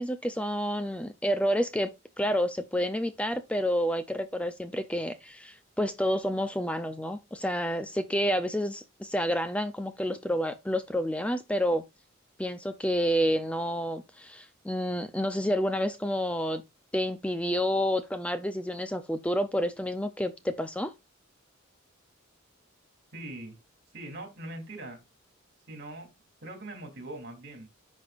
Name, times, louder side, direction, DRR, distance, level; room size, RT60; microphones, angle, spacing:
voice 1, 0.0-1.9 2.2-11.8 12.4-16.6 16.9-20.9, equal, 5° left, 0.5 m, -29 dB
voice 2, 23.1-23.6 23.9-25.0 25.7-26.1 26.4-27.7, right 1 dB, 55° right, 3.1 m, -41 dB
10.5 x 5.4 x 2.5 m
head